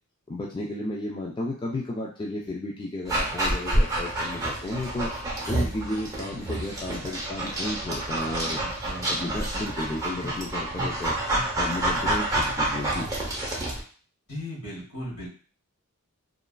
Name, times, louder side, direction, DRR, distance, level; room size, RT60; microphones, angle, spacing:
voice 1, 0.3-5.1 5.5-8.6 9.1-11.2 11.6-13.1, left 1 dB, 20° left, -3 dB, 0.3 m, -33 dB
Dog, 3.1-13.8, right 1 dB, 15° right, 0.7 m, -28 dB
voice 2, 8.1-9.4 14.3-15.3, left 1 dB, 65° left, -5 dB, 1.4 m, -38 dB
3.0 x 2.3 x 2.2 m, 0.41 s
head